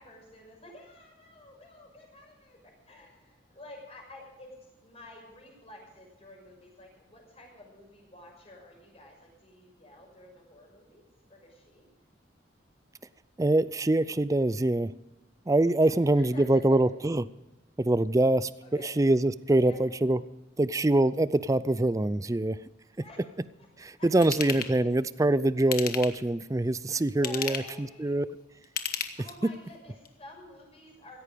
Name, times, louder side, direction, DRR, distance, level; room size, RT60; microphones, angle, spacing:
voice 1, 0.0-2.6 2.9-4.5 4.8-11.0 11.3-11.9 15.8-16.8 18.6-18.9 19.6-19.8 23.0-23.2 24.0-24.1 24.4-24.5 27.2-28.2 29.2-31.2, left 2 dB, 35° left, 0 dB, 6.2 m, -50 dB
voice 2, 13.4-14.9 15.5-17.3 17.8-18.5 18.8-20.2 20.6-22.6 23.8-28.2, right 2 dB, 15° right, 16 dB, 0.4 m, -24 dB
Ratchet pawl / Tools, 24.2-24.7 25.6-26.3 27.1-27.8 28.6-29.5 30.0-30.1, left 8 dB, 50° left, 1.3 m, -34 dB
16.5 x 14.0 x 5.2 m, 1.1 s
head